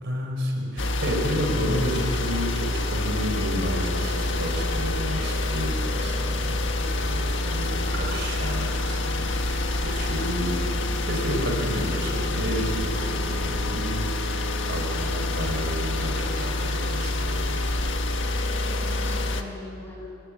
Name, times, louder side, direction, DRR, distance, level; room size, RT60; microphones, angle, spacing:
voice 1, 0.0-6.6 7.0-10.7 11.0-17.6, equal, 60° right, 1 dB, 4.3 m, -31 dB
sound 1, 0.8-19.4, left 2 dB, 65° left, 1.6 m, -27 dB
voice 2, 6.7-7.2 7.7-8.1 18.7-20.1, left 1 dB, 10° left, -3 dB, 6.5 m, -41 dB
24.0 x 19.0 x 8.8 m, 2.8 s
head